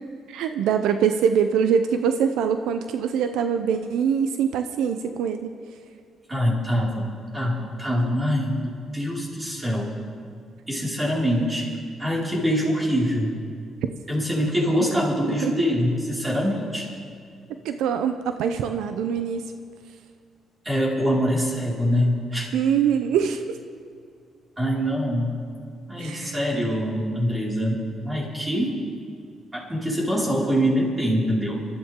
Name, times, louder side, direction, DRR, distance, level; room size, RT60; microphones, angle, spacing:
voice 1, 0.3-5.5 14.8-15.5 17.6-19.4 22.5-23.4 26.0-26.4, right 7 dB, 90° right, 8 dB, 0.7 m, -24 dB
voice 2, 6.3-9.9 10.7-11.7 12.0-13.4 14.1-16.9 20.6-22.5 24.6-25.4 25.9-28.8 29.5-31.5, equal, 20° right, -5 dB, 5.2 m, -24 dB
25.0 x 13.5 x 3.7 m, 2.3 s
cardioid pair, 90°, 0 cm